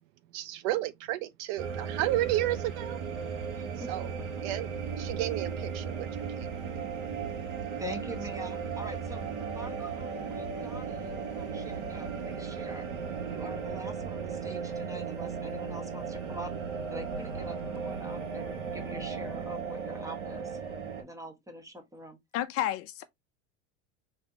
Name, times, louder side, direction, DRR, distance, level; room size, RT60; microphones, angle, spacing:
voice 1, 0.3-3.0 3.9-4.1 4.4-4.7 5.0-6.5, right 15 dB, 55° right, 0.4 m, -32 dB
sound 1, 1.6-21.0, right 6 dB, 75° right, 1.9 m, -36 dB
voice 2, 3.5-3.9 7.8-12.9 13.3-16.5 16.9-20.6 21.0-22.2, equal, 10° right, 1.1 m, -44 dB
voice 3, 22.3-23.0, left 12 dB, 40° left, 0.5 m, -31 dB
4.3 x 3.4 x 2.8 m
supercardioid pair, 135°, 37 cm